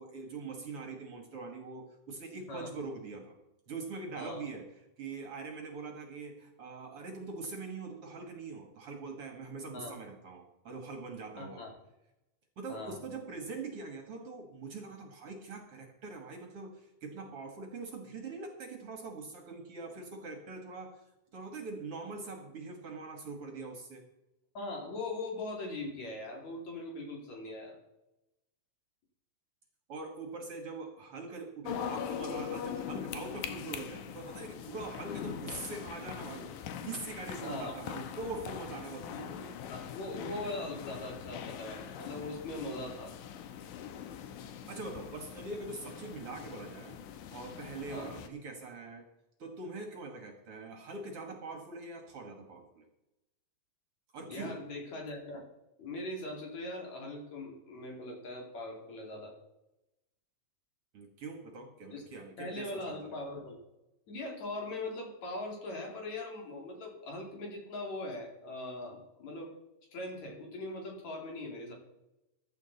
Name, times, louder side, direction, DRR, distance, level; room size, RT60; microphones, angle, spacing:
voice 1, 0.0-3.4 3.7-4.7 5.0-11.7 12.6-21.0 21.3-24.0 29.9-36.5 36.8-39.4 44.7-47.0 47.3-49.0 49.4-52.9 54.1-54.6 60.9-63.2, right 3 dB, 50° right, 3 dB, 2.2 m, -43 dB
voice 2, 11.4-11.7 12.7-13.0 24.5-27.8 37.4-37.8 39.1-43.1 47.9-48.1 54.3-55.4 55.8-59.3 61.9-62.0 62.4-63.6 64.1-69.5 69.9-71.7, left 2 dB, 60° left, 0 dB, 3.9 m, -40 dB
sound 1, 31.6-48.3, left 8 dB, 90° left, 2.4 m, -42 dB
15.0 x 11.0 x 4.0 m, 0.93 s
omnidirectional pair, 3.6 m